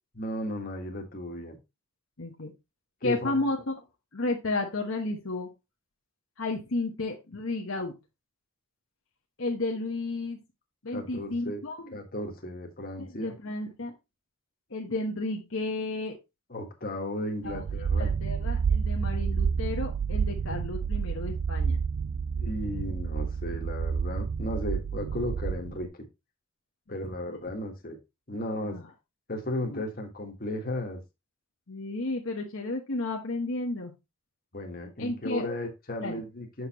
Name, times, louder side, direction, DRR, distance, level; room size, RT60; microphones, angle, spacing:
voice 1, 0.2-1.6 3.0-3.4 10.9-11.6 11.9-13.3 16.5-18.1 22.4-25.9 26.9-28.0 28.3-28.8 29.3-31.0 34.5-36.7, left 1 dB, 45° left, 2 dB, 1.6 m, -35 dB
voice 2, 2.2-2.5 3.0-3.7 4.1-5.5 6.4-7.9 9.4-10.4 10.8-12.0 13.0-13.9 14.7-16.2 17.4-17.6 18.0-21.8 27.3-27.4 28.6-28.8 29.6-29.8 31.7-33.9 35.0-35.5 36.0-36.2, left 2 dB, 65° left, 1 dB, 1.1 m, -32 dB
sound 1, 17.4-25.9, right 6 dB, 70° right, 0.4 m, -29 dB
6.7 x 6.5 x 2.9 m, 0.24 s
head